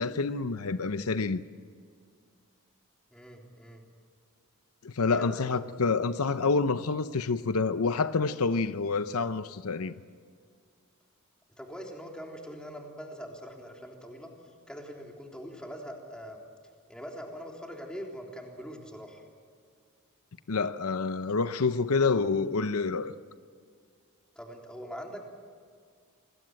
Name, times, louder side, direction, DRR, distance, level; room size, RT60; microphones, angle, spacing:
voice 1, 0.0-1.4 4.8-9.9 20.5-23.1, left 4 dB, 80° left, 0.8 m, -28 dB
voice 2, 3.1-3.8 5.0-5.6 11.6-14.3 14.7-16.4 16.9-19.2 24.4-25.2, equal, 5° left, 3.6 m, -43 dB
28.5 x 21.0 x 7.8 m
head